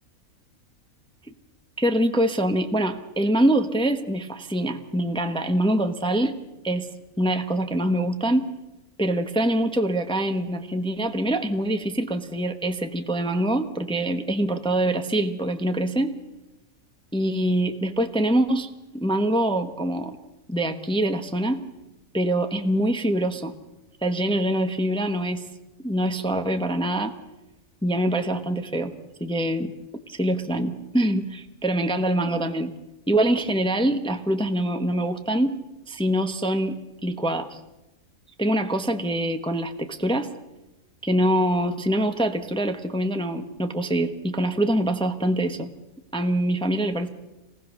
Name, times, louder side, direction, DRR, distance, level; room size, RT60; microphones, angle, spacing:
voice 1, 1.8-6.3 6.6-6.9 7.2-8.5 9.0-16.1 17.1-20.2 20.5-21.6 22.1-23.5 24.0-25.4 25.8-27.1 27.8-28.9 29.2-29.7 30.1-32.7 33.1-35.5 35.9-37.6 38.4-40.3 41.0-45.7 46.1-47.1, right 1 dB, 5° left, 6 dB, 1.0 m, -24 dB
26.5 x 19.0 x 6.5 m, 1.0 s
omnidirectional pair, 1.5 m